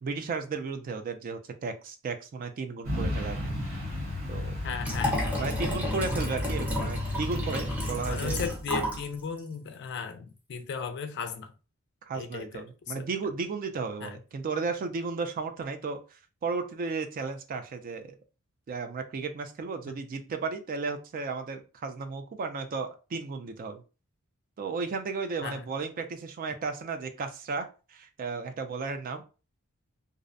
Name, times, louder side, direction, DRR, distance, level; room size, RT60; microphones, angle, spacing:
voice 1, 0.0-3.5 4.3-4.6 5.4-8.4 12.0-18.1 18.7-23.8 24.6-29.2, right 4 dB, 40° right, 0.3 m, -34 dB
Truck, 2.8-8.5, left 1 dB, 65° right, 1.1 m, -33 dB
voice 2, 4.6-5.4 8.1-11.5 12.1-13.0 14.0-14.2 25.4-25.6, left 6 dB, 50° left, 0.4 m, -36 dB
Liquid, 4.8-9.1 9.4-9.5, left 1 dB, 5° right, 0.6 m, -32 dB
2.4 x 2.0 x 2.5 m
head